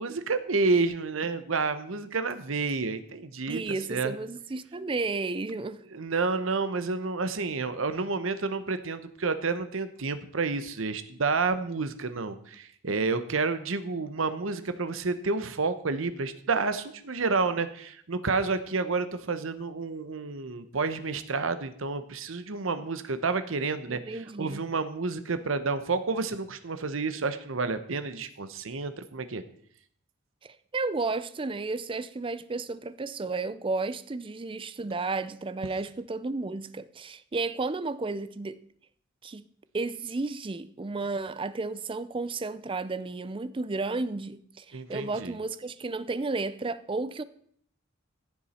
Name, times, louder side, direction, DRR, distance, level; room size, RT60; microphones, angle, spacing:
voice 1, 0.0-3.6 3.9-4.1 5.9-29.4 44.7-45.4, right 4 dB, 80° right, 0.9 m, -30 dB
voice 2, 3.5-5.8 23.9-24.6 30.4-38.6 39.2-39.4 39.7-47.2, right 3 dB, 25° right, 0.5 m, -33 dB
15.5 x 7.2 x 4.3 m
head